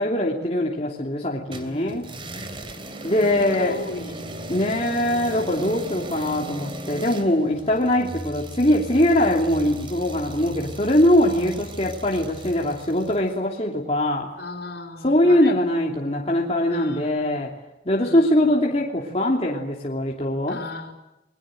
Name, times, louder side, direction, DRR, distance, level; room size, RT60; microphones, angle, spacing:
voice 1, 0.0-2.0 3.0-3.8 4.5-14.3 15.0-17.5 17.8-20.6, left 1 dB, 35° left, -2 dB, 3.0 m, -22 dB
voice 2, 1.4-2.2 2.9-5.0 11.2-11.7 14.4-15.6 16.7-17.4 17.9-18.7 20.5-20.9, left 2 dB, 65° left, 6 dB, 4.9 m, -38 dB
sound 1, 1.5-13.3, right 1 dB, 30° right, 2.9 m, -37 dB
30.0 x 22.0 x 7.9 m, 0.94 s
head